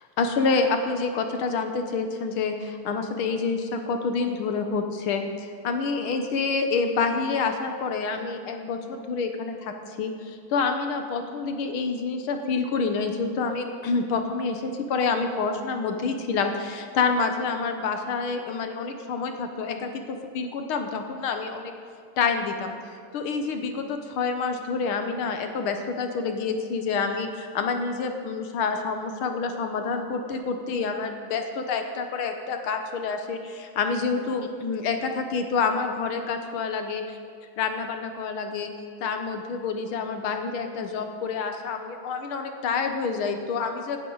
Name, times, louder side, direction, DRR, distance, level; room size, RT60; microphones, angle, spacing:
voice 1, 0.2-21.7 22.2-22.7 23.1-37.2 37.6-38.7 39.0-44.0, left 4 dB, 80° left, 5 dB, 1.9 m, -28 dB
17.5 x 12.0 x 4.0 m, 2.2 s
omnidirectional pair, 2.3 m